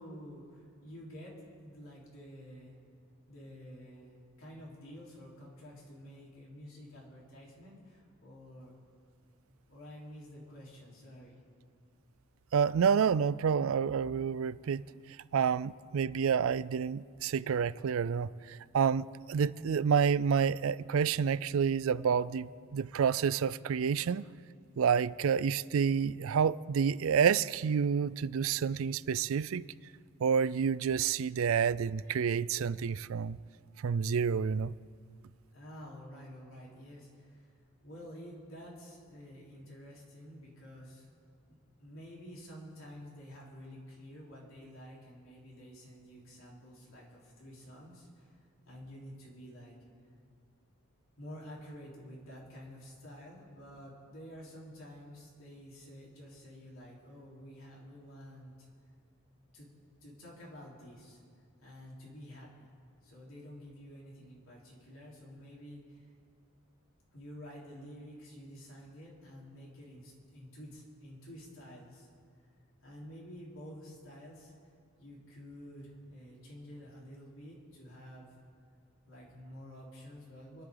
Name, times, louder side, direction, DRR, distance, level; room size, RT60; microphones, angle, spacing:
voice 1, 0.0-2.8 3.3-8.8 9.7-11.4 35.5-37.5 37.8-41.1 41.5-49.8 51.2-58.7 59.5-59.7 60.0-61.2 61.6-62.5 63.0-66.0 67.1-72.1 72.4-72.5 72.8-74.5 75.0-78.3 79.0-80.6, equal, 65° left, 4.1 m, -50 dB
voice 2, 12.5-14.8 15.3-24.2 24.8-29.7 30.2-33.4 33.8-34.7, right 7 dB, 70° right, 0.4 m, -29 dB
28.5 x 11.0 x 3.9 m
head